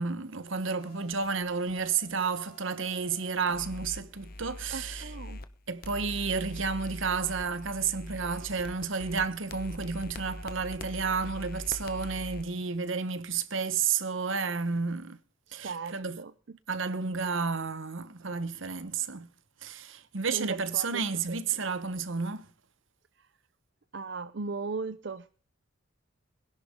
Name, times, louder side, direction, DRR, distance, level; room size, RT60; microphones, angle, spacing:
voice 1, 0.0-5.1 5.7-15.2 15.5-16.2 16.7-19.3 19.6-22.5, right 5 dB, 75° right, 1.1 m, -31 dB
sound 1, 0.8-5.5 5.8-12.4, left 1 dB, 45° left, 1.1 m, -43 dB
voice 2, 4.7-5.4 15.5-16.3 20.3-20.9 21.3-21.4 23.9-25.4, right 4 dB, 55° right, 0.6 m, -37 dB
21.5 x 11.0 x 3.7 m
head